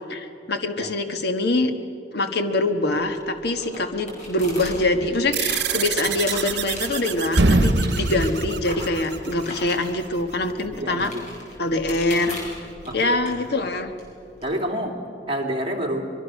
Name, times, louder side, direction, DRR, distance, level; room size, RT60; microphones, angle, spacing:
voice 1, 0.1-1.7 2.1-11.1 11.6-12.4 12.9-13.9, left 2 dB, 65° left, 7 dB, 1.5 m, -24 dB
sound 1, 2.7-14.4, left 1 dB, 45° left, 6.6 m, -39 dB
sound 2, 5.3-10.2, right 11 dB, 70° right, 1.1 m, -30 dB
sound 3, 6.1-7.0 7.3-9.4, right 1 dB, 90° right, 1.0 m, -22 dB
voice 2, 10.8-11.2 12.8-13.4 14.4-15.0 15.3-16.1, equal, 35° right, 1 dB, 2.9 m, -28 dB
24.5 x 22.5 x 6.4 m, 2.7 s
head